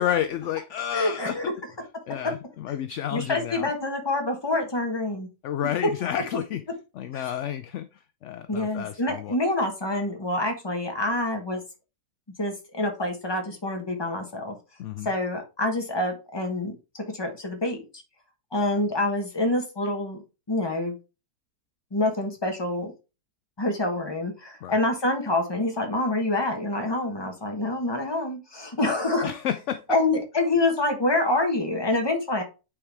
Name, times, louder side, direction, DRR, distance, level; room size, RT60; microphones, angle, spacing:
voice 1, 0.0-1.4 2.1-3.7 5.4-6.6 6.9-7.9 8.2-9.4 14.8-15.1 24.6-24.8 29.2-29.8, left 10 dB, 70° left, 11 dB, 0.7 m, -30 dB
voice 2, 0.9-1.4 3.1-5.3 5.8-5.9 7.1-7.3 8.5-11.6 12.4-14.5 15.0-18.0 18.5-20.2 20.5-20.9 21.9-22.9 23.6-29.3 29.9-32.4, left 2 dB, 15° left, 3 dB, 1.3 m, -26 dB
8.7 x 4.7 x 3.4 m, 0.30 s
omnidirectional pair, 1.7 m